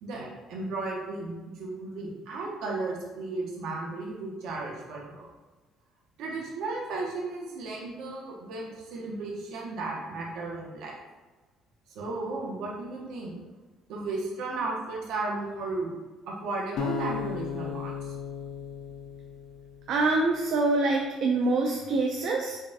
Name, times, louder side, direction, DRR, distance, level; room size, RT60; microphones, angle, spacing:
voice 1, 0.0-5.3 6.2-10.9 11.9-13.3 13.9-15.9 16.3-18.1, right 3 dB, 75° right, -2 dB, 1.0 m, -34 dB
sound 1, 16.8-19.9, left 6 dB, 65° left, 0.4 m, -35 dB
voice 2, 19.9-22.6, right 3 dB, 55° right, 0 dB, 0.4 m, -25 dB
5.2 x 2.4 x 2.7 m, 1.2 s
cardioid pair, 165°, 0 cm